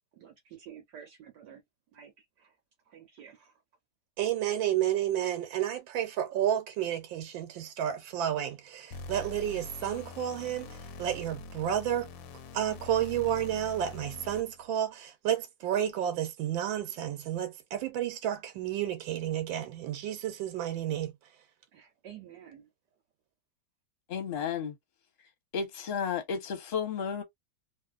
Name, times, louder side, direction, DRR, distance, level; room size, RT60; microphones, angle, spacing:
voice 1, 0.1-1.6 1.9-2.5 2.9-3.6 21.7-22.7, right 9 dB, 70° right, 1.2 m, -50 dB
voice 2, 4.2-12.1 12.5-21.1, right 10 dB, 90° right, 1.4 m, -31 dB
sound 1, 8.9-14.7, left 3 dB, 80° left, 1.3 m, -44 dB
voice 3, 24.1-24.8 25.5-27.2, left 6 dB, 40° left, 1.0 m, -32 dB
2.9 x 2.6 x 2.4 m
omnidirectional pair, 2.0 m